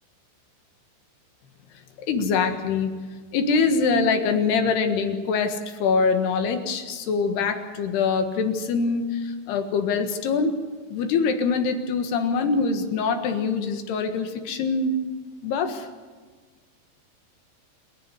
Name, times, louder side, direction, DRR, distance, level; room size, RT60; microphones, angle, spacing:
voice 1, 2.0-3.0 3.3-10.5 10.9-14.9 15.4-15.9, left 5 dB, 65° left, 6 dB, 3.3 m, -24 dB
27.5 x 10.5 x 9.7 m, 1.4 s
omnidirectional pair, 5.5 m